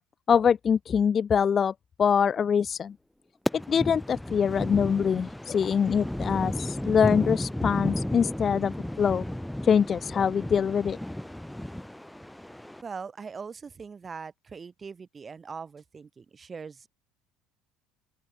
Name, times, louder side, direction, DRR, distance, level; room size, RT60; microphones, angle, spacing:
voice 1, 0.3-1.7 2.0-2.9 3.7-9.2 9.6-11.0, left 7 dB, 30° left, 0.4 m, -24 dB
sound 1, 3.5-12.8, left 1 dB, 5° left, 3.5 m, -33 dB
voice 2, 12.8-16.9, right 5 dB, 25° right, 6.3 m, -41 dB
open air
cardioid pair, 125°, 0 cm